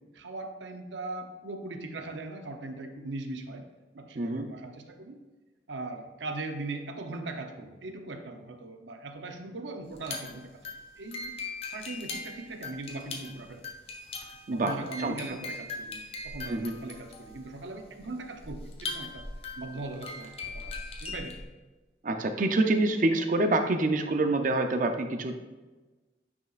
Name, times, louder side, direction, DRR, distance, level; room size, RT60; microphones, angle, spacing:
voice 1, 0.1-3.7 3.9-5.2 5.7-10.6 11.0-11.3 11.7-13.6 14.5-19.3 19.6-21.4, right 2 dB, 90° right, 6 dB, 0.8 m, -40 dB
voice 2, 4.1-4.5 14.5-15.1 16.5-16.7 22.0-25.4, right 2 dB, 45° right, 6 dB, 0.5 m, -26 dB
sound 1, 9.9-21.4, left 3 dB, 35° left, 1.0 m, -40 dB
9.3 x 5.6 x 2.5 m, 1.2 s
head